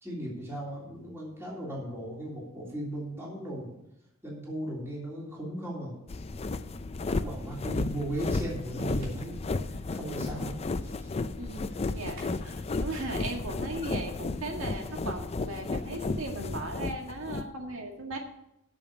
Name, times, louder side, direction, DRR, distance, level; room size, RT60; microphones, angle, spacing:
voice 1, 0.0-3.7 4.2-5.9 7.1-9.4 9.7-10.5 10.8-11.1 11.5-11.6, right 1 dB, 15° right, -5 dB, 3.2 m, -37 dB
sound 1, 6.1-17.5, left 3 dB, 30° left, 0.4 m, -33 dB
sound 2, 9.0-9.3 12.1-12.6, right 2 dB, 70° right, 3.5 m, -51 dB
voice 2, 11.4-18.2, right 2 dB, 90° right, 2 dB, 1.8 m, -37 dB
8.6 x 6.9 x 8.6 m, 0.82 s
head